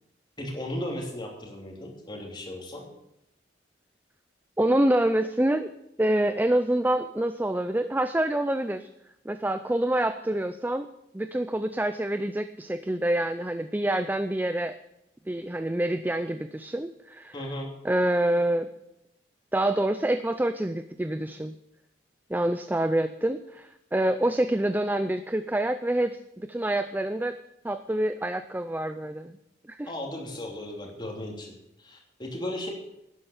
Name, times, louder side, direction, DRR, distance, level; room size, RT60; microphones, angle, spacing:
voice 1, 0.4-2.8 17.3-17.7 29.9-31.5 31.8-32.7, left 1 dB, 25° left, 0 dB, 3.1 m, -36 dB
voice 2, 4.6-5.7 6.0-8.9 9.3-10.9 11.1-14.8 15.3-17.3 17.8-18.7 19.5-21.5 22.3-27.4 27.6-29.4 29.7-29.9, right 1 dB, 10° right, 10 dB, 0.4 m, -26 dB
12.0 x 10.0 x 7.1 m, 0.84 s
head